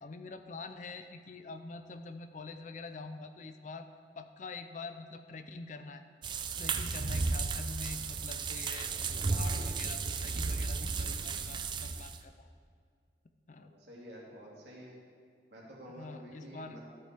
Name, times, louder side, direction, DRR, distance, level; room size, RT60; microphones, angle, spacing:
voice 1, 0.0-3.9 4.1-6.0 6.6-8.9 9.3-12.5 13.5-13.7 15.9-16.8, left 3 dB, 45° left, 8 dB, 0.5 m, -45 dB
sound 1, 6.2-12.2, right 4 dB, 25° right, 0.3 m, -34 dB
voice 2, 13.6-15.0 15.5-16.8, equal, 80° right, -3 dB, 2.2 m, -50 dB
13.0 x 5.1 x 4.5 m, 2.1 s
head